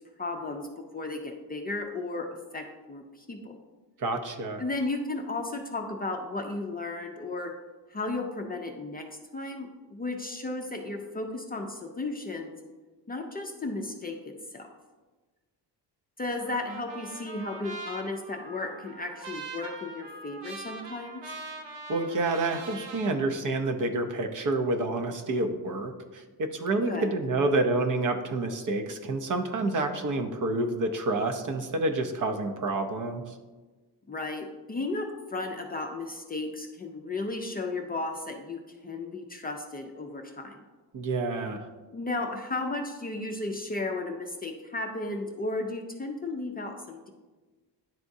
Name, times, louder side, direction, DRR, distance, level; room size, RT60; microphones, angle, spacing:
voice 1, 0.2-0.7 0.9-2.3 2.5-3.6 4.6-7.5 7.9-9.0 9.3-12.6 13.1-14.7 16.2-21.2 26.8-27.1 34.1-40.6 41.9-47.1, left 2 dB, 20° left, 2 dB, 0.4 m, -34 dB
voice 2, 4.0-4.6 21.9-33.3 40.9-41.7, right 2 dB, 45° right, 5 dB, 0.7 m, -28 dB
Trumpet, 16.4-23.2, right 3 dB, 85° right, 0.9 m, -42 dB
10.5 x 3.5 x 2.6 m, 1.3 s
cardioid pair, 120°, 43 cm